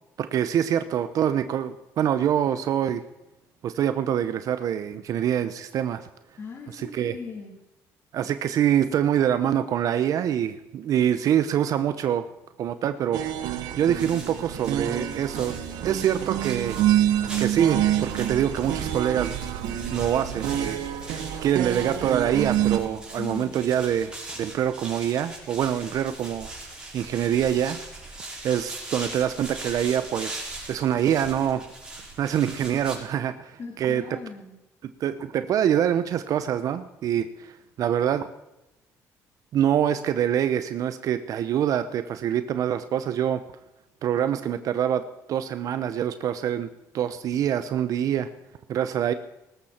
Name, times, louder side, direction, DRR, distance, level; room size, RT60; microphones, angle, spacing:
voice 1, 0.2-3.0 3.6-6.1 6.7-7.1 8.1-12.3 12.6-13.2 13.8-15.6 15.8-16.8 17.4-19.4 19.9-20.8 21.4-26.5 26.9-27.8 28.4-31.7 32.2-34.2 35.0-38.3 39.5-43.4 44.0-45.0 45.3-46.7 46.9-48.3 48.7-49.1, right 10 dB, 60° right, 11 dB, 0.8 m, -25 dB
voice 2, 6.4-7.5 23.2-23.6 33.6-34.5, left 5 dB, 40° left, -1 dB, 3.6 m, -38 dB
sound 1, 13.1-22.8, right 11 dB, 85° right, 1.4 m, -27 dB
sound 2, 14.0-33.0, right 2 dB, 15° right, 5.4 m, -41 dB
18.5 x 13.5 x 4.5 m, 0.91 s
cardioid pair, 110°, 7 cm